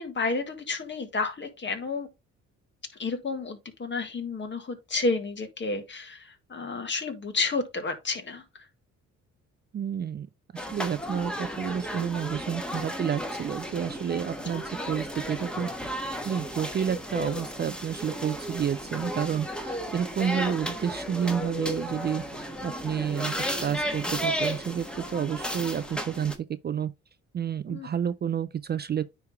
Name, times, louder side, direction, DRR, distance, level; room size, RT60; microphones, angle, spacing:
voice 1, 0.0-2.1 3.0-8.4 27.7-27.9, left 3 dB, 40° left, 1.8 m, -31 dB
voice 2, 9.7-10.3 10.5-26.3 26.6-26.9 27.3-29.0, right 8 dB, 35° right, 0.4 m, -30 dB
sound 1, 10.6-26.4, equal, 5° left, 1.3 m, -34 dB
9.6 x 3.4 x 3.4 m
cardioid pair, 90°, 30 cm